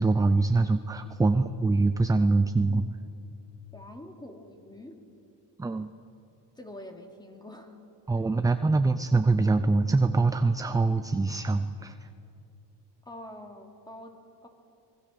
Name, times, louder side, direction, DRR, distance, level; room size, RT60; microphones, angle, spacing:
voice 1, 0.0-3.0 5.6-5.9 8.1-12.1, right 3 dB, 10° right, 9 dB, 0.5 m, -24 dB
voice 2, 3.7-5.0 6.6-7.8 13.0-14.5, left 1 dB, 10° left, 3 dB, 2.9 m, -45 dB
25.5 x 22.5 x 6.8 m, 2.6 s
cardioid pair, 120°, 44 cm